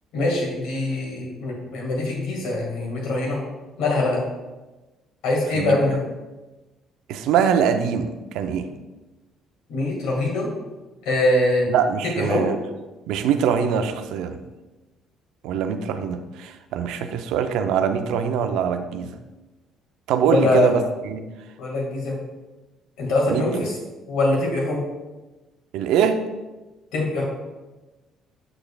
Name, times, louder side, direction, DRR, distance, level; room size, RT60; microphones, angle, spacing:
voice 1, 0.1-3.4 3.8-4.2 5.2-6.0 9.7-10.5 11.1-11.7 12.2-12.5 20.3-20.7 21.6-22.1 23.0-23.7 24.1-24.8 26.9-27.2, left 2 dB, 75° left, -2 dB, 1.9 m, -23 dB
voice 2, 7.1-8.7 11.7-12.6 13.1-14.4 15.4-19.1 20.1-21.2 23.3-23.4 25.7-26.2, right 7 dB, 75° right, 8 dB, 0.5 m, -23 dB
7.6 x 6.6 x 2.3 m, 1.1 s
hypercardioid pair, 60°, 0 cm